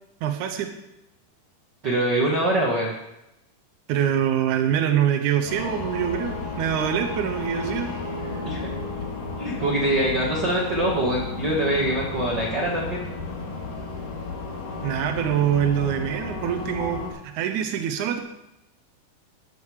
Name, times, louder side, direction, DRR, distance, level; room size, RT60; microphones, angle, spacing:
voice 1, 0.2-0.7 3.9-7.9 8.2-8.7 14.8-18.2, right 9 dB, 90° right, 6 dB, 1.7 m, -25 dB
voice 2, 1.8-2.9 8.4-8.6 9.4-13.0, right 1 dB, 65° right, -3 dB, 1.0 m, -24 dB
sound 1, 5.5-17.1, left 3 dB, 60° left, 3.3 m, -33 dB
13.0 x 9.0 x 4.8 m, 0.89 s
omnidirectional pair, 4.6 m